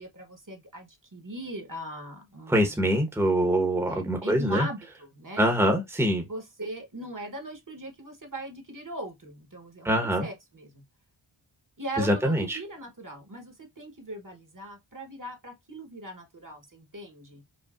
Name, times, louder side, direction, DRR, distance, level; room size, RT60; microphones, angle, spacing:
voice 1, 0.0-3.0 3.9-5.5 6.3-10.8 11.8-17.4, right 1 dB, 40° right, 1.2 m, -39 dB
voice 2, 2.5-4.7 5.4-6.3 9.8-10.3 12.0-12.6, equal, 5° right, 1.0 m, -24 dB
5.3 x 2.3 x 2.4 m
wide cardioid pair, 45°, 49 cm